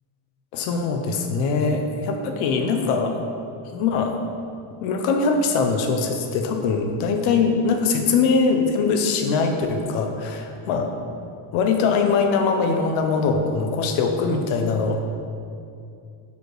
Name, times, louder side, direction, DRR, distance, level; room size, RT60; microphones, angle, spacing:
voice 1, 0.5-3.2 3.6-4.1 4.8-10.9 11.5-15.2, left 4 dB, 70° left, 5 dB, 0.8 m, -22 dB
5.3 x 4.7 x 4.7 m, 2.5 s
cardioid pair, 180°, 49 cm